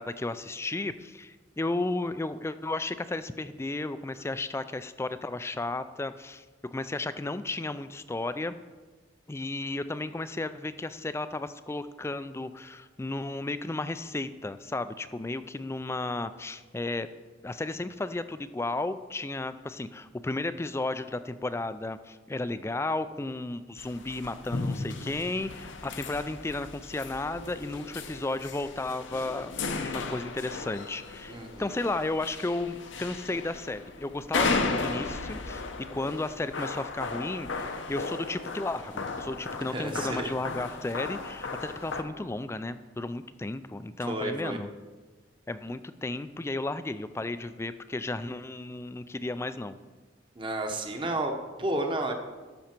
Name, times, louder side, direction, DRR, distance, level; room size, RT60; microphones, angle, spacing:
voice 1, 0.0-8.5 9.3-17.1 17.4-29.5 29.8-44.7 45.5-49.8, left 2 dB, 15° left, 13 dB, 0.3 m, -34 dB
sound 1, 23.8-42.0, left 3 dB, 70° left, 0.8 m, -35 dB
voice 2, 31.3-31.7 39.7-40.3 44.1-44.6 50.4-52.1, right 1 dB, 25° right, 4 dB, 0.9 m, -31 dB
12.5 x 6.9 x 4.5 m, 1.3 s
head